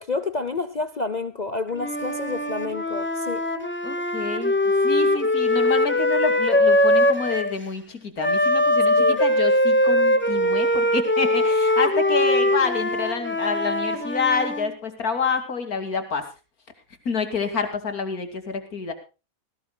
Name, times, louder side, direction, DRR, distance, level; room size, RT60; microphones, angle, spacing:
voice 1, 0.0-3.4 9.0-9.2, left 3 dB, 35° left, 0.8 m, -29 dB
Wind instrument woodwind instrument, 1.7-7.5 8.2-14.7, left 1 dB, 10° left, 1.7 m, -21 dB
voice 2, 3.8-4.5 4.8-16.2 17.0-18.9, left 5 dB, 85° left, 3.2 m, -28 dB
20.0 x 17.0 x 2.3 m
omnidirectional pair, 1.5 m